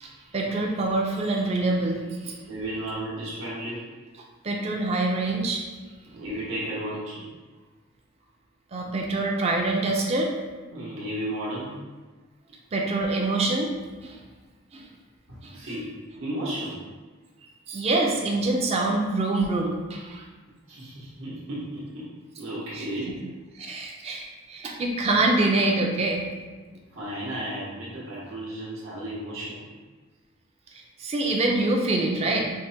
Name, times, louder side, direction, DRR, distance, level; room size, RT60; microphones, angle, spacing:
voice 1, 0.0-2.4 4.4-5.6 8.7-10.3 12.7-13.7 14.0-14.2 14.7-14.9 15.4-15.8 17.7-20.2 22.7-22.9 23.5-26.3 30.7-32.5, right 2 dB, 30° right, 0 dB, 0.4 m, -25 dB
voice 2, 2.5-3.8 6.1-7.2 10.7-11.8 15.3-16.8 20.7-22.1 22.4-23.1 26.9-29.8, right 1 dB, 80° right, -7 dB, 0.9 m, -34 dB
4.6 x 2.1 x 2.7 m, 1.3 s
head